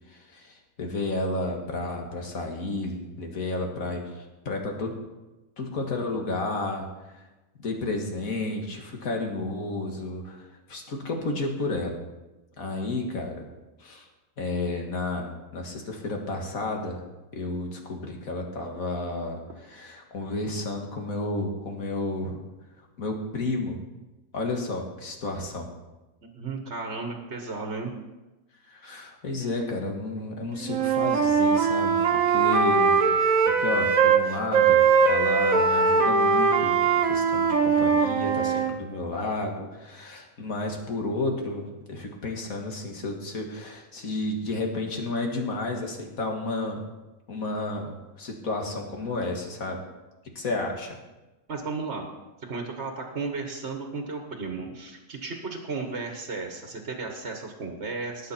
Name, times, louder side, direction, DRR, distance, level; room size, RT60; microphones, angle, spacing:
voice 1, 0.1-5.0 5.6-6.9 7.1-7.2 7.6-12.0 12.6-13.5 13.8-14.1 14.4-17.0 17.3-22.4 23.0-23.8 24.3-25.7 28.7-33.1 33.6-46.8 47.3-49.8 50.4-50.9, left 2 dB, 90° left, 2 dB, 2.2 m, -32 dB
voice 2, 26.2-27.9 51.5-52.1 52.5-58.3, right 4 dB, 50° right, 3 dB, 1.6 m, -34 dB
Wind instrument woodwind instrument, 30.7-34.2 34.5-38.7, right 5 dB, 80° right, 1.5 m, -21 dB
19.0 x 7.7 x 4.3 m, 1.1 s
omnidirectional pair, 1.4 m